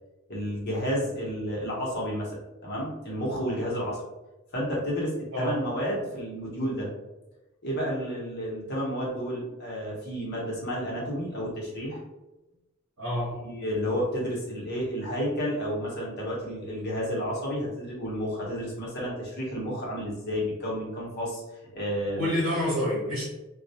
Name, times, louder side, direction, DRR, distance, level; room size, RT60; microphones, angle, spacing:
voice 1, 0.3-2.3 2.6-4.0 4.5-6.9 7.6-12.0 13.4-21.4 21.7-22.3, equal, 50° left, -4 dB, 0.8 m, -31 dB
voice 2, 5.3-5.7 13.0-13.4 22.1-23.3, left 1 dB, 70° right, -6 dB, 0.8 m, -28 dB
2.1 x 2.1 x 2.7 m, 1.0 s
head